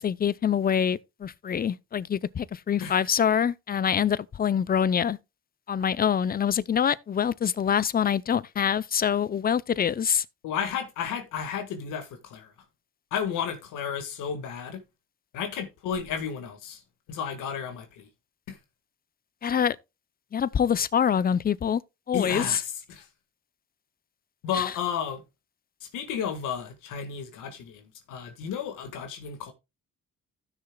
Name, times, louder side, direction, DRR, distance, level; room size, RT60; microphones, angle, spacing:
voice 1, 0.0-5.2 5.7-10.2 19.4-19.8 20.3-21.8 22.1-22.6 24.5-24.7, left 8 dB, 30° left, 0.5 m, -25 dB
voice 2, 10.4-12.5 13.1-14.8 15.3-16.8 17.1-18.1 18.5-18.6 22.1-23.1 24.4-25.2 25.8-29.5, left 7 dB, 90° left, 1.7 m, -33 dB
15.5 x 6.6 x 2.2 m
cardioid pair, 90°, 30 cm